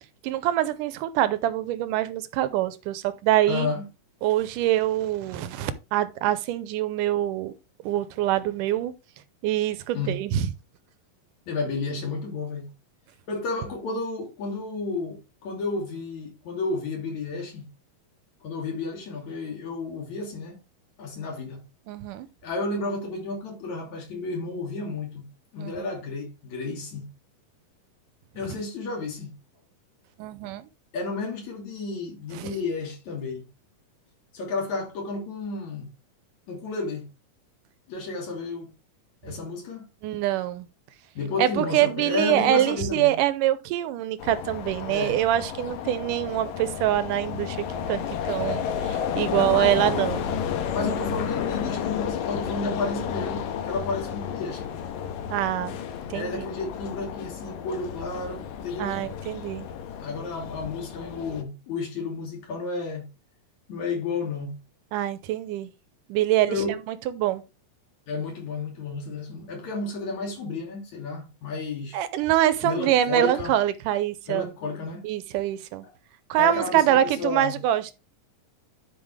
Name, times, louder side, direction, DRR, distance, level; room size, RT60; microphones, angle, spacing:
voice 1, 0.2-3.7 4.2-7.5 7.8-8.9 9.4-10.5 21.9-22.3 25.6-25.9 30.2-30.7 32.3-32.6 40.0-40.7 41.4-47.6 47.9-50.2 55.3-55.8 56.1-56.5 58.8-59.7 64.9-65.7 66.1-66.6 66.9-67.4 71.9-74.5 75.0-75.9 76.3-78.0, right 12 dB, 80° right, 2.2 m, -25 dB
voice 2, 3.5-3.8 9.9-10.2 11.5-12.7 13.3-17.7 18.4-20.6 21.0-21.6 22.4-25.2 25.5-27.1 28.3-29.3 30.9-33.4 34.3-35.9 36.5-37.1 37.9-38.7 39.2-39.8 41.2-43.2 44.9-45.2 49.3-49.8 50.7-54.7 56.1-59.0 60.0-63.0 63.7-64.6 66.5-66.7 68.1-72.0 72.6-73.6 74.3-75.0 76.4-77.6, left 3 dB, 55° left, 3.8 m, -32 dB
sound 1, 44.2-61.4, left 8 dB, 75° left, 2.7 m, -32 dB
11.0 x 5.4 x 3.3 m
omnidirectional pair, 4.0 m